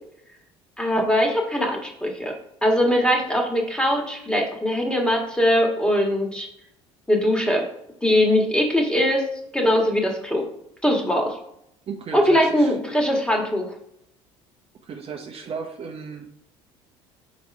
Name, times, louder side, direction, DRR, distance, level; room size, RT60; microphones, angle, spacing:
voice 1, 0.8-2.3 2.6-6.5 7.1-7.6 8.0-9.3 9.5-10.5 10.8-11.4 12.1-13.7, equal, 5° left, 1 dB, 1.6 m, -21 dB
voice 2, 11.9-12.7 14.8-16.3, right 5 dB, 40° right, 3 dB, 0.8 m, -35 dB
4.6 x 4.2 x 5.3 m, 0.77 s
hypercardioid pair, 70°, 15 cm